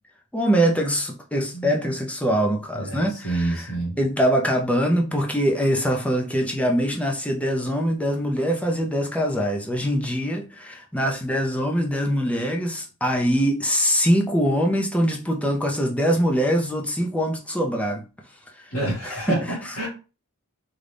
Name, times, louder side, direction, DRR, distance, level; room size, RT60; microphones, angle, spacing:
voice 1, 0.3-3.6 4.0-18.0 19.3-19.4, equal, 5° left, 0.5 m, -23 dB
voice 2, 1.5-1.9 2.7-4.0 18.7-19.9, right 2 dB, 90° left, 1.7 m, -28 dB
3.9 x 2.3 x 3.3 m
head